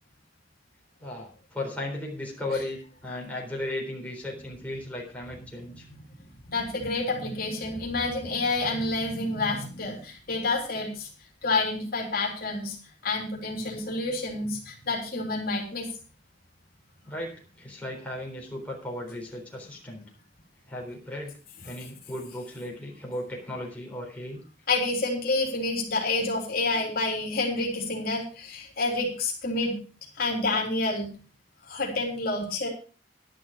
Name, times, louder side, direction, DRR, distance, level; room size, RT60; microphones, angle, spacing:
voice 1, 1.0-5.8 17.1-20.1 20.7-21.3 21.6-24.4, left 1 dB, 10° left, -1 dB, 3.9 m, -36 dB
voice 2, 6.5-11.1 11.4-12.8 13.0-15.9 24.7-29.8 30.2-31.1 31.7-32.7, left 2 dB, 55° left, 0 dB, 3.5 m, -28 dB
11.5 x 11.0 x 4.9 m, 0.36 s
head